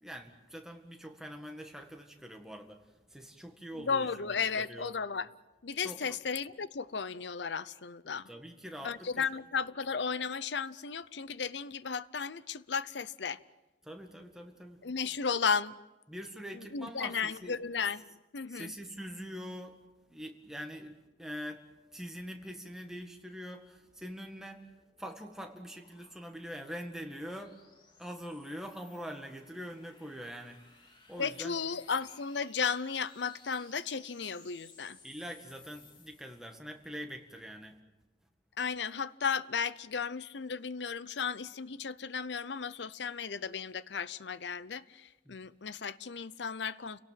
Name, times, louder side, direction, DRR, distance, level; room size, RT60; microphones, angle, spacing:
voice 1, 0.0-2.8 3.1-4.1 4.6-4.9 5.8-6.2 8.3-9.3 13.8-14.8 16.1-17.6 18.5-19.8 20.1-21.6 21.9-24.6 25.0-27.6 28.0-30.6 31.1-31.6 35.0-37.7 45.3-45.4, equal, 5° right, 1.9 m, -44 dB
voice 2, 3.7-5.3 5.6-8.3 8.8-13.4 14.8-15.7 16.5-18.0 18.3-18.7 31.2-35.0 38.6-47.0, left 6 dB, 70° left, 0.7 m, -34 dB
sound 1, 24.6-36.8, left 3 dB, 25° left, 2.7 m, -60 dB
29.5 x 18.0 x 7.7 m
head